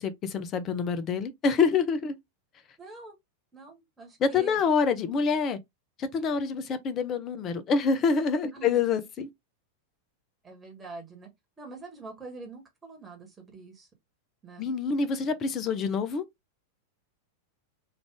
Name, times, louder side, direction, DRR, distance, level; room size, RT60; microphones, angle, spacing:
voice 1, 0.0-2.2 4.2-5.6 6.0-9.3 14.6-16.2, left 5 dB, 30° left, 0.6 m, -26 dB
voice 2, 2.8-3.2 3.5-4.6 8.5-8.8 10.4-11.3 11.6-13.9 14.4-14.7, right 3 dB, 15° right, 1.3 m, -45 dB
3.3 x 2.5 x 3.4 m
figure-of-eight pair, 90°, 0 cm